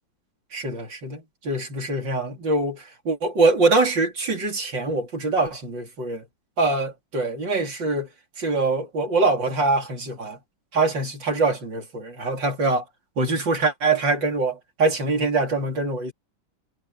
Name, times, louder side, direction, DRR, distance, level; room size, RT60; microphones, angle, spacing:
voice 1, 0.5-6.2 6.6-8.1 8.4-10.4 10.7-12.8 13.2-16.1, right 3 dB, 65° right, 4.3 m, -24 dB
omnidirectional pair, 2.2 m